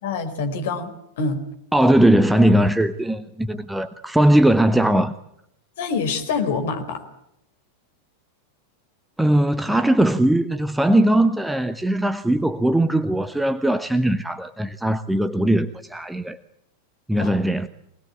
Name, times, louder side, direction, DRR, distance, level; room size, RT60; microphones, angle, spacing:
voice 1, 0.0-1.4 5.8-7.0 17.2-17.4, left 4 dB, 55° left, 4.7 m, -26 dB
voice 2, 1.7-5.1 9.2-16.4 17.1-17.7, right 1 dB, 5° right, 1.0 m, -19 dB
25.0 x 20.0 x 8.7 m
figure-of-eight pair, 90°, 0 cm